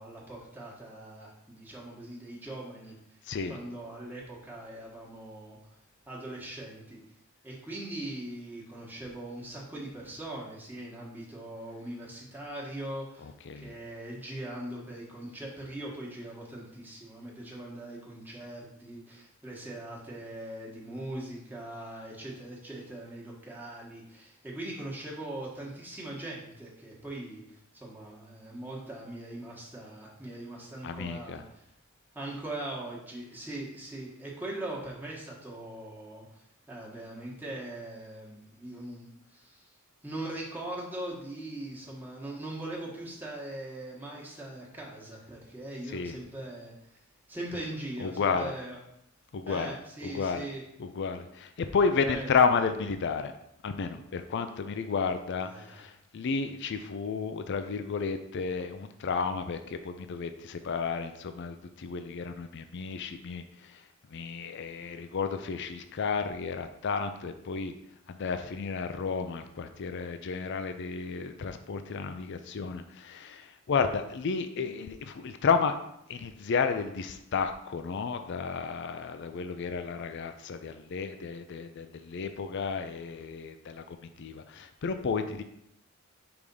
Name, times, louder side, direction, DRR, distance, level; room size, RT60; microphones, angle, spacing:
voice 1, 0.0-2.9 3.5-5.6 6.1-7.0 7.4-13.3 13.6-31.6 32.1-39.7 40.0-47.0 47.3-48.8 49.5-50.6 52.0-52.5 55.4-55.8, right 1 dB, 10° right, -4 dB, 1.3 m, -41 dB
voice 2, 3.3-3.6 13.2-13.7 30.8-31.4 45.9-46.2 48.0-48.5 49.3-49.8 50.0-50.5 50.8-53.3 53.6-63.8 64.1-67.7 68.1-75.8 76.1-85.4, left 5 dB, 60° left, 8 dB, 0.4 m, -32 dB
4.9 x 3.5 x 5.4 m, 0.78 s
head